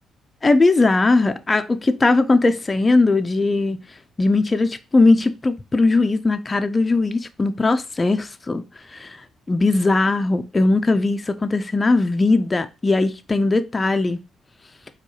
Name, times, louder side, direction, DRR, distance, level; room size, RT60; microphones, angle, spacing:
voice 1, 0.4-3.8 4.2-8.6 8.9-9.1 9.5-14.2, left 3 dB, 25° left, 0.4 m, -19 dB
4.5 x 2.3 x 2.7 m
cardioid pair, 90°, 0 cm